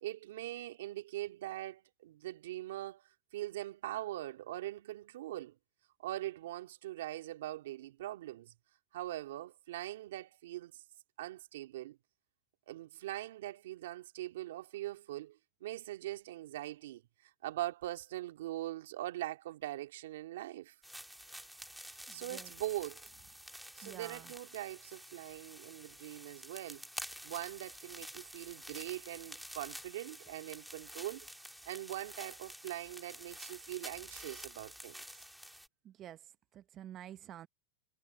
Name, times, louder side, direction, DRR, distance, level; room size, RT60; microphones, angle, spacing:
voice 1, 0.0-3.0 3.3-5.6 6.0-8.5 8.9-10.8 11.2-12.0 12.7-20.8 21.8-23.0 23.8-31.3 31.7-35.0, right 15 dB, 75° right, 2.1 m, -42 dB
sound 1, 20.8-35.7, equal, ahead, 2.6 m, -49 dB
voice 2, 22.1-22.5 23.8-24.3 35.8-36.2 36.5-37.5, right 11 dB, 35° right, 0.8 m, -49 dB
hypercardioid pair, 120°, 0 cm